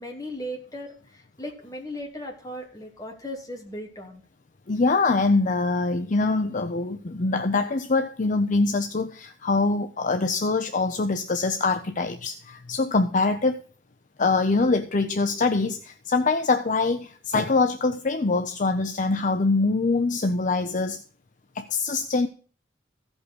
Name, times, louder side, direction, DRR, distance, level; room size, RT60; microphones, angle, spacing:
voice 1, 0.0-4.2, equal, 20° left, -1 dB, 2.9 m, -37 dB
voice 2, 4.7-13.6 14.2-21.0 21.5-22.3, left 3 dB, 45° left, 8 dB, 0.7 m, -24 dB
15.0 x 5.4 x 6.3 m, 0.42 s
head